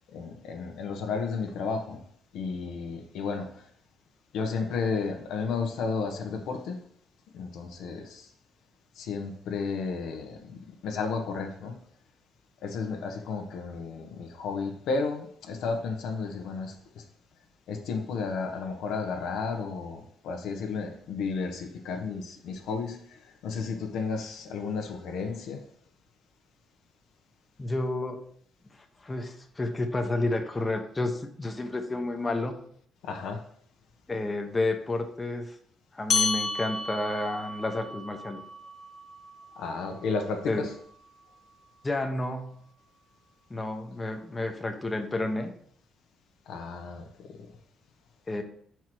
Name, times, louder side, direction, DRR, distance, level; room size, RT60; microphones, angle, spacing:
voice 1, 0.1-2.0 2.3-3.6 4.3-6.8 7.3-8.3 9.0-11.8 12.6-16.7 17.7-25.6 33.0-33.4 39.6-40.7 46.5-47.5, left 4 dB, 80° left, 4 dB, 1.0 m, -33 dB
voice 2, 27.6-28.2 29.0-32.6 34.1-35.6 35.9-38.4 40.5-40.7 41.8-42.6 43.5-45.5 48.3-48.4, left 2 dB, 20° left, 5 dB, 0.9 m, -30 dB
sound 1, 36.1-40.9, left 4 dB, 50° left, 1.2 m, -33 dB
4.7 x 4.7 x 6.0 m, 0.63 s
cardioid pair, 90°, 0 cm